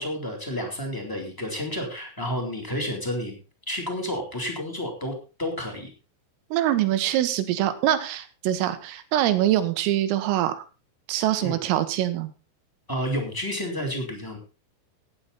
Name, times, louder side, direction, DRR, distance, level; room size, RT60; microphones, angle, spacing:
voice 1, 0.0-3.3 3.7-5.9 11.4-11.6 12.9-14.4, equal, 5° left, 1 dB, 2.4 m, -30 dB
voice 2, 6.5-10.6 11.1-12.3, right 12 dB, 85° right, 11 dB, 3.9 m, -24 dB
15.5 x 9.8 x 4.2 m, 0.33 s
omnidirectional pair, 5.9 m